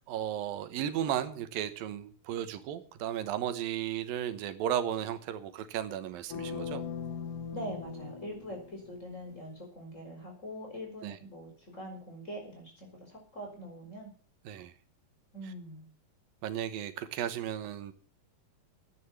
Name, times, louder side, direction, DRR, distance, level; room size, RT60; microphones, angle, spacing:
voice 1, 0.1-6.8 11.0-11.2 14.5-14.7 16.4-17.9, right 10 dB, 90° right, 11 dB, 2.9 m, -34 dB
sound 1, 6.3-9.3, left 6 dB, 75° left, 3.1 m, -40 dB
voice 2, 7.5-14.1 15.3-15.8, equal, 20° left, 1 dB, 5.3 m, -43 dB
12.5 x 9.7 x 7.2 m, 0.42 s
omnidirectional pair, 4.0 m